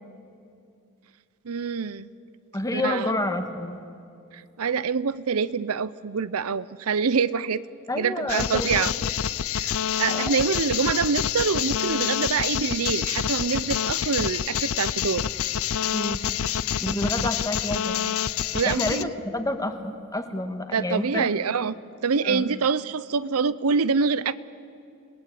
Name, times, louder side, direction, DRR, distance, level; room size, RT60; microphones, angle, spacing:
voice 1, 1.4-2.1 2.7-3.1 4.3-7.6 8.0-8.9 9.5-9.7 10.0-15.3 18.5-19.1 20.7-21.8 22.0-24.3, right 5 dB, 75° right, 16 dB, 0.6 m, -25 dB
voice 2, 2.5-3.8 7.9-8.7 9.7-10.3 15.9-16.2 16.8-18.0 18.6-21.3 22.2-22.5, left 1 dB, 15° left, 7 dB, 1.6 m, -29 dB
sound 1, 8.3-19.0, left 9 dB, 70° left, 0.6 m, -27 dB
27.0 x 18.5 x 8.7 m, 2.5 s
head